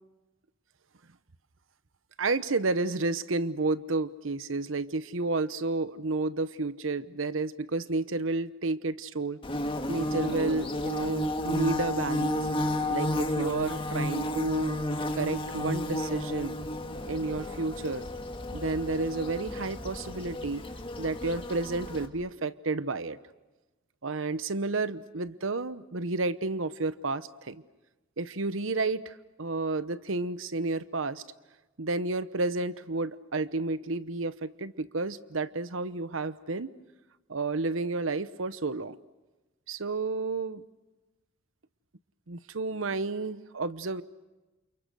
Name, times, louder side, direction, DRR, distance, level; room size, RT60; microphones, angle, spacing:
voice 1, 2.2-9.4 9.9-12.5 12.9-14.8 15.1-16.6 17.1-18.1 18.5-20.7 21.0-23.2 24.0-27.6 28.2-31.2 31.8-36.7 37.3-39.0 39.7-40.6 42.3-44.0, right 3 dB, 80° right, 14 dB, 1.0 m, -31 dB
Bird / Buzz, 9.4-22.1, left 1 dB, 25° left, 2.0 m, -32 dB
29.0 x 29.0 x 6.4 m, 1.1 s
head